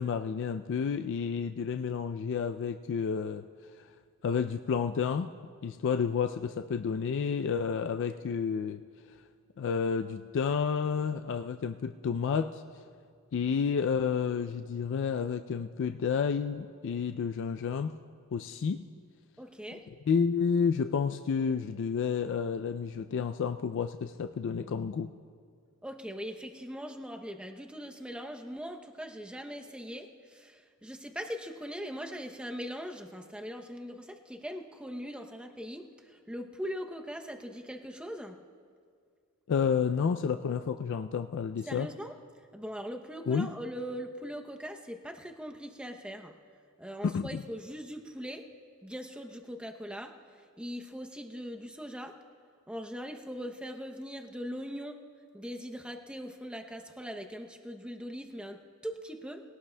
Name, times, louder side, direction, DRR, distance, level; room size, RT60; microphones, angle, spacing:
voice 1, 0.0-3.4 4.2-5.3 5.6-8.8 9.6-12.6 13.3-18.0 18.3-18.8 19.7-19.8 20.1-25.1 39.5-41.9 43.3-43.5 47.0-47.4, left 6 dB, 60° left, 8 dB, 0.3 m, -30 dB
voice 2, 19.4-19.9 25.8-38.3 41.7-42.1 42.5-46.3 46.8-48.5 48.8-50.1 50.6-52.2 52.7-55.0 55.3-59.4, equal, 5° right, 4 dB, 0.6 m, -41 dB
21.0 x 17.5 x 2.2 m, 2.1 s
head